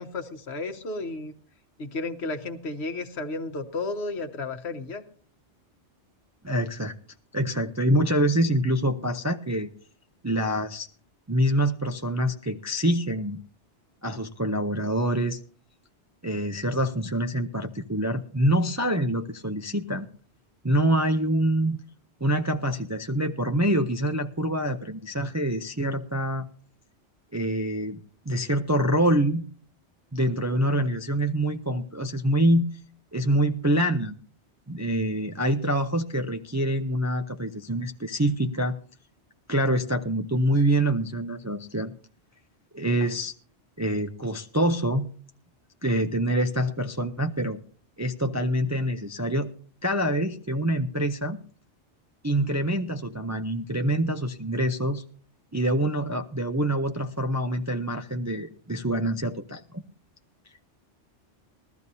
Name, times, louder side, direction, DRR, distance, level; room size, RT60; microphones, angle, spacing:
voice 1, 0.0-1.3 1.8-5.1, left 3 dB, 65° left, 7 dB, 1.3 m, -33 dB
voice 2, 6.4-6.9 7.3-9.7 10.2-10.9 11.3-13.4 14.0-15.4 16.2-20.1 20.6-21.8 22.2-26.4 27.3-28.0 28.3-29.4 30.1-32.7 33.1-34.1 34.7-38.8 39.5-41.9 42.7-43.3 43.8-45.1 45.8-47.6 48.0-49.5 49.8-51.4 52.2-55.0 55.5-59.8, right 1 dB, 20° right, 5 dB, 0.4 m, -25 dB
20.0 x 13.5 x 2.7 m, 0.43 s
omnidirectional pair, 1.2 m